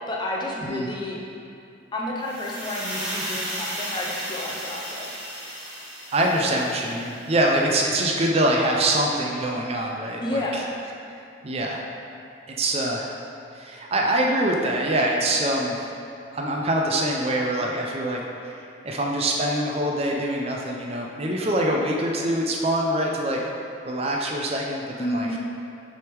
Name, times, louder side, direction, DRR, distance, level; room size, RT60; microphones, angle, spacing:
voice 1, 0.1-1.2 1.9-5.2 10.2-10.7 25.0-25.4, left 1 dB, 25° left, -3 dB, 0.6 m, -30 dB
sound 1, 2.2-7.3, equal, 10° right, 1.4 m, -34 dB
voice 2, 6.1-10.4 11.4-11.8 12.6-13.1 13.5-15.7 16.3-18.2 18.5-23.4 23.9-25.3, right 1 dB, 30° right, -1 dB, 0.5 m, -24 dB
6.2 x 3.5 x 4.6 m, 2.6 s
head